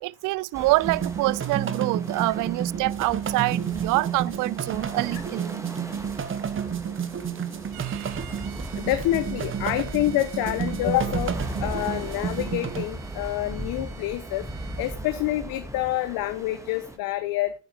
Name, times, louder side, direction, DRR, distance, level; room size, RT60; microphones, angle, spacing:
voice 1, 0.0-5.6, right 21 dB, 60° right, 0.5 m, -26 dB
sound 1, 0.5-17.0, right 1 dB, 10° right, 2.0 m, -38 dB
sound 2, 0.8-12.9, right 8 dB, 35° right, 1.2 m, -31 dB
Bowed string instrument, 7.7-15.0, right 11 dB, 80° right, 1.7 m, -48 dB
voice 2, 8.7-14.4 14.8-17.5, left 15 dB, 70° left, 1.1 m, -27 dB
9.7 x 8.6 x 4.9 m
supercardioid pair, 80°, 36 cm